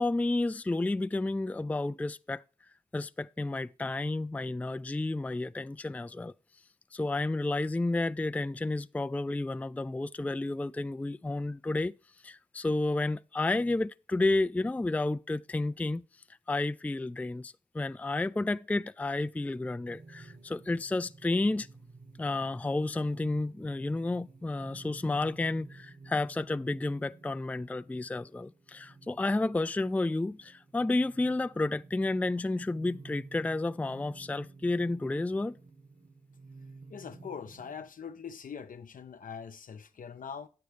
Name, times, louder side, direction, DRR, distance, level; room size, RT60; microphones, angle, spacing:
voice 1, 0.0-2.4 2.9-6.3 6.9-11.9 12.2-16.0 16.5-21.7 22.2-35.6, left 2 dB, 10° left, 0.3 m, -31 dB
sound 1, 19.9-37.9, right 3 dB, 60° right, 1.5 m, -53 dB
voice 2, 36.9-40.5, left 6 dB, 65° left, 0.8 m, -42 dB
9.2 x 7.6 x 3.4 m
supercardioid pair, 45°, 15 cm